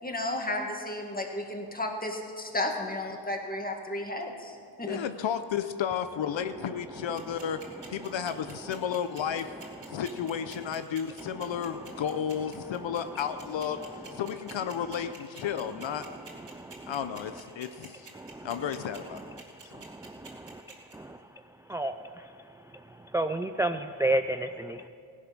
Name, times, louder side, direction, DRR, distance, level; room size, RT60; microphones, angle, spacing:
voice 1, 0.0-5.0, left 1 dB, 20° left, 2 dB, 2.0 m, -33 dB
voice 2, 4.9-7.6 7.9-9.5 9.9-13.8 14.1-16.0 16.9-18.1 18.4-19.2, left 8 dB, 75° left, 10 dB, 0.7 m, -32 dB
sound 1, 7.2-20.9, right 4 dB, 60° right, 3.1 m, -47 dB
voice 3, 23.1-24.9, right 1 dB, 5° right, 8 dB, 0.4 m, -28 dB
16.5 x 11.0 x 6.1 m, 2.3 s
cardioid pair, 90°, 46 cm